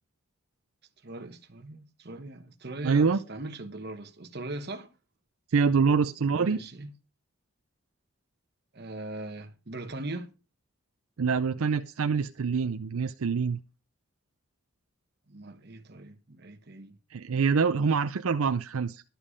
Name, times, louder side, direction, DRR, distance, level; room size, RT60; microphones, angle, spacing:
voice 1, 1.0-4.9 6.4-6.9 8.7-10.3 15.3-17.0, right 2 dB, 45° right, 1.1 m, -40 dB
voice 2, 2.8-3.2 5.5-6.6 11.2-13.6 17.1-19.0, right 5 dB, 75° right, 0.5 m, -25 dB
11.5 x 7.4 x 5.1 m
head